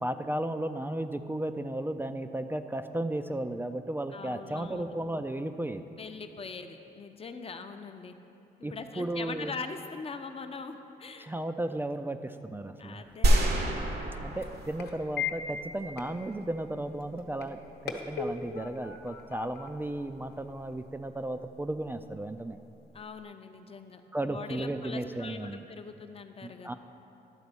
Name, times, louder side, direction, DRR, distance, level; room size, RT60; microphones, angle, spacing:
voice 1, 0.0-5.8 8.6-9.5 11.2-13.1 14.2-17.6 18.1-22.6 24.1-25.6 26.4-26.7, right 1 dB, 15° right, 8 dB, 0.3 m, -34 dB
voice 2, 4.1-5.0 6.0-8.1 8.6-11.3 12.8-13.7 22.9-26.7, left 4 dB, 35° left, 7 dB, 0.6 m, -42 dB
sound 1, 13.0-20.9, left 6 dB, 75° left, 0.9 m, -41 dB
sound 2, 13.2-15.5, right 1 dB, 75° right, 1.1 m, -27 dB
10.5 x 4.0 x 6.9 m, 2.8 s
cardioid pair, 80°, 17 cm